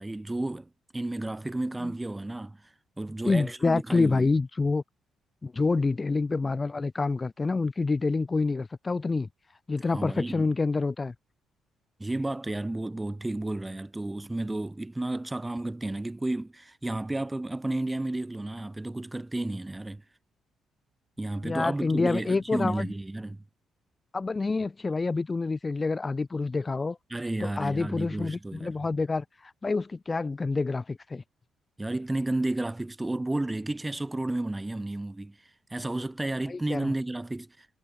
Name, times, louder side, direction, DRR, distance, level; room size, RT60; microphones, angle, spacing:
voice 1, 0.0-2.6 3.0-4.3 9.9-10.5 12.0-20.0 21.2-23.4 27.1-28.7 31.8-35.4 35.7-37.7, right 2 dB, 15° right, 1.6 m, -32 dB
voice 2, 3.2-4.8 5.4-9.3 9.7-11.1 21.4-22.9 24.1-27.0 27.4-31.2 36.5-36.9, left 3 dB, 25° left, 1.2 m, -27 dB
cardioid pair, 90°, 0 cm